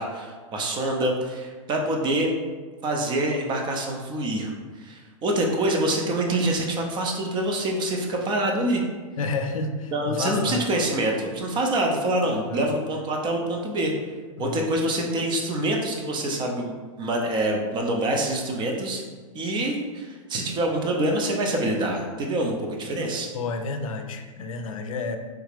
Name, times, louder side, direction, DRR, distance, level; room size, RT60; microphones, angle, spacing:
voice 1, 0.0-2.3 2.8-4.5 4.8-8.8 9.9-13.9 14.4-16.7 17.0-19.0 19.3-23.3, right 1 dB, 25° right, 1 dB, 0.6 m, -26 dB
voice 2, 9.2-10.7 12.5-12.7 14.4-14.7 23.3-25.2, left 3 dB, 80° left, 6 dB, 0.4 m, -30 dB
3.3 x 2.4 x 3.3 m, 1.4 s
hypercardioid pair, 110°, 17 cm